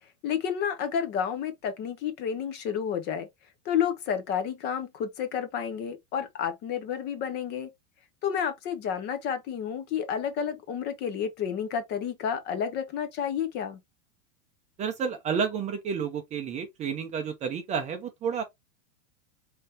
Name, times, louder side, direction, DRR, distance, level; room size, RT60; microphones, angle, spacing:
voice 1, 0.2-3.3 3.6-7.7 8.2-13.8, left 8 dB, 25° left, 0.7 m, -30 dB
voice 2, 14.8-18.4, right 6 dB, 20° right, 0.6 m, -30 dB
5.2 x 3.3 x 2.8 m
supercardioid pair, 150°, 38 cm